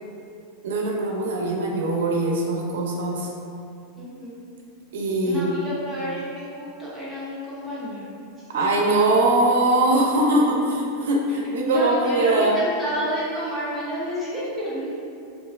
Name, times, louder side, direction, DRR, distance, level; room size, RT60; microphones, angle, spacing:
voice 1, 0.6-3.3 4.9-5.5 8.5-12.5, right 2 dB, 85° right, -1 dB, 0.4 m, -21 dB
voice 2, 4.0-4.4 5.2-8.1 11.6-14.9, equal, ahead, -11 dB, 0.6 m, -30 dB
3.0 x 2.4 x 2.3 m, 2.6 s
supercardioid pair, 160°, 0 cm